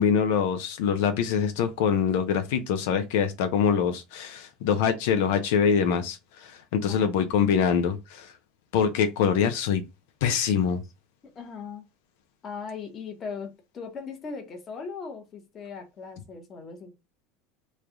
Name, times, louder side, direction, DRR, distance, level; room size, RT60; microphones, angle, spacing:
voice 1, 0.0-8.3 8.7-9.8 10.2-10.8, left 7 dB, 80° left, 0.5 m, -24 dB
voice 2, 6.9-7.6 11.2-11.8 12.4-16.9, left 5 dB, 25° left, 1.0 m, -39 dB
3.2 x 2.3 x 3.7 m
cardioid pair, 155°, 0 cm